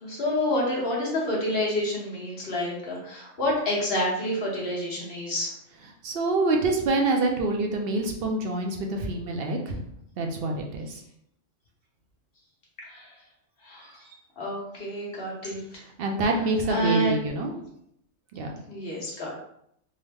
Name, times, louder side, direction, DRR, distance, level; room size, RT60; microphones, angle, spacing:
voice 1, 0.0-5.5 12.9-13.1 13.6-14.0 14.4-15.8 16.7-17.1 18.7-19.4, left 1 dB, 50° left, -4 dB, 1.2 m, -28 dB
voice 2, 6.0-9.8 10.2-11.0 16.0-17.5 18.3-18.5, right 2 dB, 60° right, 2 dB, 0.6 m, -26 dB
3.7 x 2.0 x 3.3 m, 0.73 s
omnidirectional pair, 1.3 m